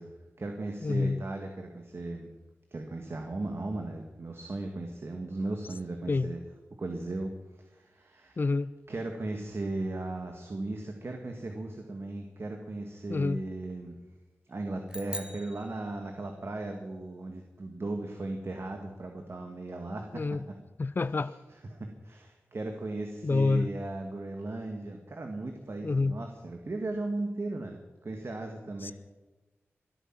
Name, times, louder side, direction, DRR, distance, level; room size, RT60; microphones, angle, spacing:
voice 1, 0.0-2.3 2.7-6.4 6.8-7.3 7.6-8.4 8.9-14.0 14.5-20.2 21.7-28.9, right 2 dB, 55° right, 3 dB, 1.8 m, -37 dB
voice 2, 0.8-1.2 6.1-6.3 8.4-8.7 13.1-13.4 20.1-20.4 20.8-21.3 23.2-23.7 25.8-26.2 28.8-28.9, left 3 dB, 40° left, 16 dB, 0.4 m, -28 dB
sound 1, 14.9-16.5, right 1 dB, 15° right, 1.7 m, -43 dB
25.5 x 8.8 x 6.0 m, 1.1 s
cardioid pair, 50°, 5 cm